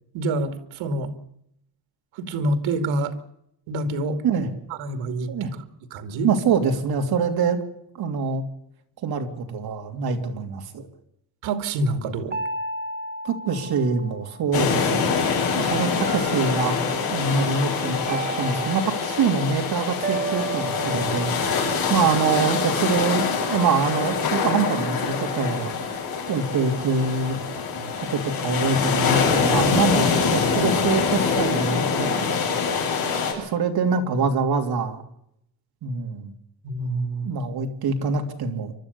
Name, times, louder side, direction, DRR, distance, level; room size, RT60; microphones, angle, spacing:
voice 1, 0.1-1.1 2.1-3.2 3.7-4.2 4.7-5.3 5.9-6.3 11.4-12.4 27.7-27.9 36.6-37.3, right 2 dB, 90° right, 9 dB, 2.6 m, -27 dB
voice 2, 6.2-7.6 8.0-8.4 9.0-10.9 13.2-15.2 15.6-26.0 26.3-27.4 28.1-32.3 33.0-35.0 35.8-36.3 37.2-38.7, right 5 dB, 55° right, 5 dB, 3.0 m, -25 dB
sound 1, 12.3-14.7 16.1-17.1 18.1-19.4 20.0-22.4, right 3 dB, 20° right, 1.5 m, -34 dB
sound 2, 14.5-33.3, left 5 dB, 50° left, 7.6 m, -24 dB
29.5 x 13.0 x 6.9 m, 0.76 s
cardioid pair, 150°, 45 cm